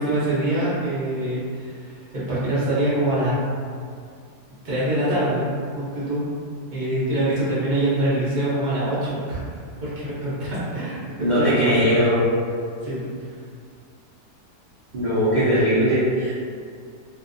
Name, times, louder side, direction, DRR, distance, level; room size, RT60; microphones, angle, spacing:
voice 1, 0.0-3.4 4.6-5.5 5.8-6.3 6.7-12.1 12.8-13.1, right 1 dB, 45° right, -10 dB, 0.6 m, -24 dB
voice 2, 11.2-12.3 14.9-16.3, equal, 80° right, -12 dB, 0.4 m, -19 dB
2.5 x 2.1 x 2.5 m, 2.2 s
omnidirectional pair, 1.6 m